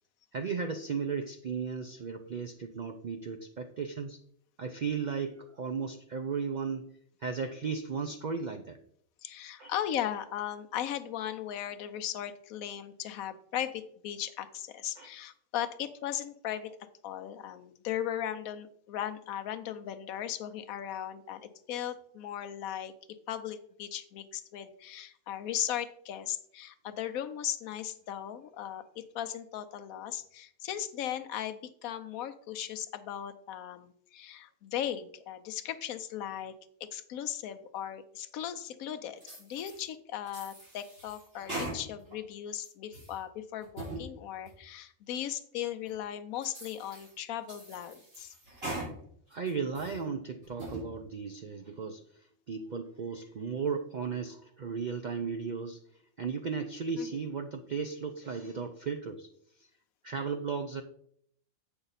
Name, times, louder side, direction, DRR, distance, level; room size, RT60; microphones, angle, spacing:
voice 1, 0.3-4.2 4.6-6.8 7.2-8.8 9.6-9.7 15.0-15.1 49.3-52.0 52.5-55.8 56.2-59.3 60.0-60.8, right 5 dB, 80° right, 7 dB, 0.4 m, -35 dB
voice 2, 9.2-16.8 17.0-22.9 23.3-36.5 36.8-48.3 57.0-57.1, left 10 dB, 80° left, 9 dB, 1.1 m, -37 dB
sound 1, 39.2-39.8 40.3-42.1 42.5-43.2 43.6-44.0 44.4-44.5 45.1-45.2 45.9-46.0 46.4-47.1 47.5-48.9 49.3-50.0 50.4-50.8, right 2 dB, 45° right, 3.6 m, -41 dB
7.9 x 5.8 x 4.0 m, 0.66 s
omnidirectional pair, 1.5 m